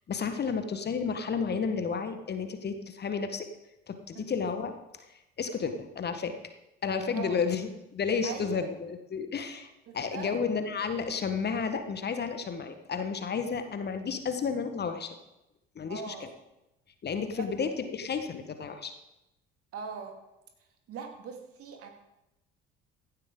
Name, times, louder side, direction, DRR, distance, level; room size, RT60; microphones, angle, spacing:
voice 1, 0.1-3.5 3.9-4.7 5.4-6.3 6.8-9.7 9.9-15.1 15.7-16.3 17.0-18.9, left 5 dB, 35° left, 8 dB, 1.4 m, -32 dB
voice 2, 8.2-8.7 9.9-10.3 15.9-16.3 17.3-17.5 19.7-20.2 20.9-21.9, right 6 dB, 50° right, 4 dB, 2.4 m, -41 dB
16.0 x 11.5 x 3.8 m, 0.92 s
figure-of-eight pair, 60°, 29 cm